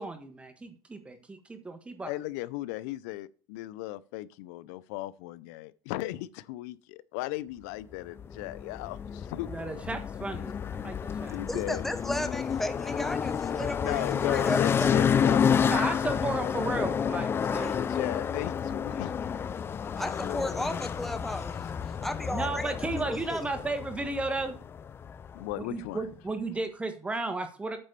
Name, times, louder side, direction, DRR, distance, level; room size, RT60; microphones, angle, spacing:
voice 1, 0.0-2.1 9.5-11.3 15.6-17.9 22.3-24.5 25.7-27.8, right 2 dB, 15° right, 1.4 m, -34 dB
voice 2, 2.0-9.5 11.3-11.8 13.8-17.2 17.6-19.1 20.2-20.9 21.9-22.0 25.3-26.0, left 17 dB, 80° left, 0.5 m, -37 dB
sound 1, 8.2-25.6, left 7 dB, 25° left, 0.4 m, -30 dB
voice 3, 11.4-15.0 17.4-17.8 20.0-21.6 22.0-23.4, left 1 dB, 5° left, 0.8 m, -35 dB
8.8 x 4.2 x 6.8 m
supercardioid pair, 110°, 9 cm